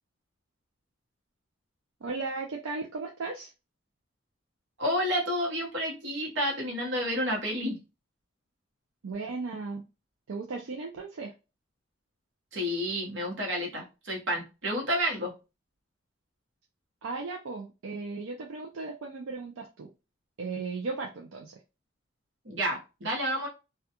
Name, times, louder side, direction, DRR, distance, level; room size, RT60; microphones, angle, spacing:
voice 1, 2.0-3.5 9.0-9.8 10.3-11.3 17.0-19.9 20.4-21.6, right 3 dB, 90° right, 2 dB, 0.5 m, -36 dB
voice 2, 4.8-7.8 12.5-15.3 22.4-23.5, equal, 70° right, -1 dB, 1.0 m, -30 dB
2.3 x 2.2 x 2.8 m, 0.28 s
head